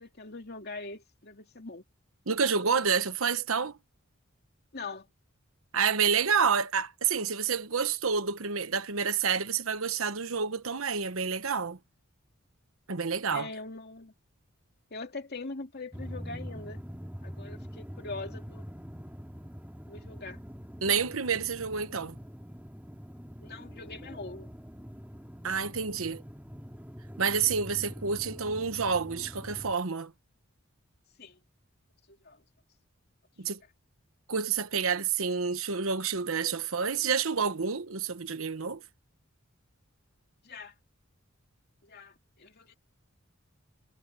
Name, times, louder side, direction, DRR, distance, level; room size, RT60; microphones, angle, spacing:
voice 1, 0.0-1.8 4.7-5.1 13.3-14.1 14.9-16.8 17.2-18.7 19.9-20.4 23.4-24.5 31.2-31.4 32.1-32.4 33.5-33.6 40.4-40.7 41.8-42.8, left 3 dB, 50° left, 2.8 m, -42 dB
voice 2, 2.3-3.7 5.7-11.8 12.9-13.5 20.8-22.2 25.4-26.2 27.2-30.1 33.4-33.6 34.3-38.8, right 6 dB, 80° right, 1.1 m, -29 dB
sound 1, 15.9-29.7, equal, 10° right, 4.0 m, -44 dB
head